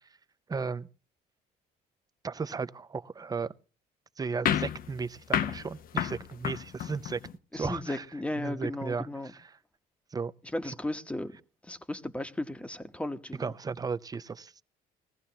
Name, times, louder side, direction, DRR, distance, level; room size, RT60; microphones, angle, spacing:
voice 1, 0.5-0.9 2.2-3.5 4.2-7.2 7.5-8.1 8.4-9.6 10.1-10.3 10.7-10.8 13.4-14.6, right 5 dB, 20° right, 0.6 m, -35 dB
sound 1, 4.5-7.3, left 9 dB, 60° left, 0.8 m, -31 dB
voice 2, 7.5-9.3 10.5-11.3 11.7-13.5, left 1 dB, 5° left, 1.0 m, -35 dB
20.5 x 15.5 x 2.9 m
cardioid pair, 110°, 17 cm